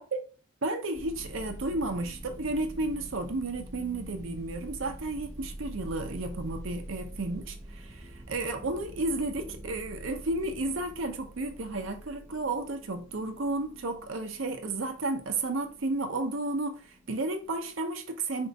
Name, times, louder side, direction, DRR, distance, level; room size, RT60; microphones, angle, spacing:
voice 1, 0.6-18.5, right 2 dB, 65° right, 0.7 m, -32 dB
sound 1, 0.9-17.7, right 1 dB, 15° right, 0.8 m, -46 dB
4.4 x 2.5 x 3.9 m
head